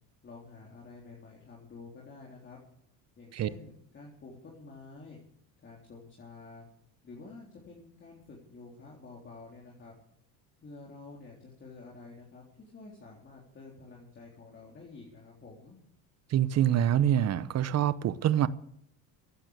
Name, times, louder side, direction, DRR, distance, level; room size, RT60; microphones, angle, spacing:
voice 1, 0.2-2.6 3.2-5.2 5.6-6.7 7.0-9.9 10.6-12.4 12.7-15.8, left 3 dB, 30° left, 3.8 m, -49 dB
voice 2, 16.3-18.5, right 10 dB, 45° right, 1.0 m, -25 dB
15.5 x 9.0 x 8.4 m
cardioid pair, 110°, 37 cm